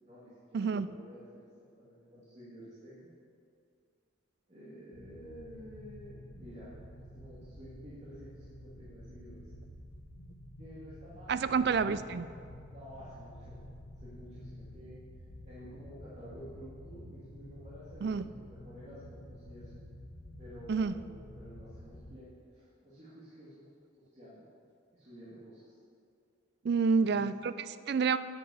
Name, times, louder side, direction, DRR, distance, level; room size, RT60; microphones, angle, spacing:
voice 1, 0.0-1.5 1.8-3.1 4.5-9.5 10.6-11.9 12.7-13.6 14.0-15.0 15.4-19.8 20.4-23.7 24.1-24.5 24.9-25.7 26.7-27.2, equal, 35° right, -11 dB, 2.4 m, -51 dB
voice 2, 0.5-0.9 11.3-12.3 18.0-18.3 20.7-20.9 26.6-28.2, right 5 dB, 55° right, 14 dB, 0.3 m, -29 dB
sound 1, 4.9-22.2, equal, 75° left, 1.4 m, -50 dB
9.9 x 8.5 x 6.9 m, 2.4 s
head